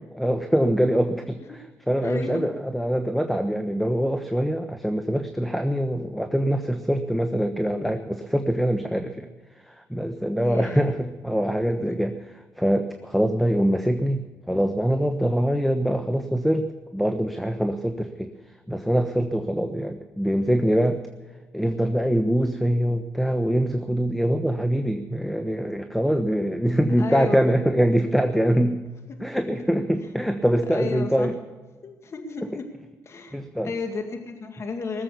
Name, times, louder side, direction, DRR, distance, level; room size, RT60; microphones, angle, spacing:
voice 1, 0.1-1.4 1.9-9.3 9.7-12.1 12.6-16.7 16.9-18.3 18.7-21.0 21.5-28.8 29.2-31.3 33.3-33.7, equal, ahead, 7 dB, 1.1 m, -24 dB
voice 2, 2.0-2.5 10.4-10.9 11.6-12.0 27.0-27.5 29.1-29.2 30.0-30.1 30.7-31.3 31.8-32.7 33.0-33.4 33.6-35.0, left 4 dB, 50° left, 5 dB, 2.0 m, -33 dB
19.0 x 7.7 x 8.3 m, 1.3 s
cardioid pair, 80°, 6 cm